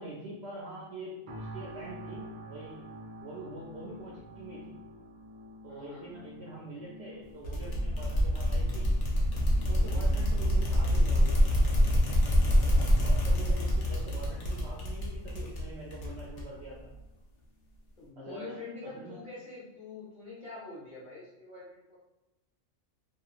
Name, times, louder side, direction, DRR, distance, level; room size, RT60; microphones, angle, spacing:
voice 1, 0.0-2.8 3.2-4.7 5.6-8.9 9.7-11.5 13.0-16.9 18.2-19.2, right 2 dB, 65° right, -4 dB, 0.7 m, -44 dB
sound 1, 1.3-16.3 16.8-16.9, equal, 90° right, 0.4 m, -50 dB
voice 2, 5.7-6.1 9.8-10.2 12.5-12.9 18.0-22.0, left 3 dB, 40° left, -8 dB, 1.0 m, -45 dB
sound 2, 7.4-16.7, equal, 65° left, 1.0 m, -26 dB
2.8 x 2.3 x 2.4 m, 0.98 s
omnidirectional pair, 1.4 m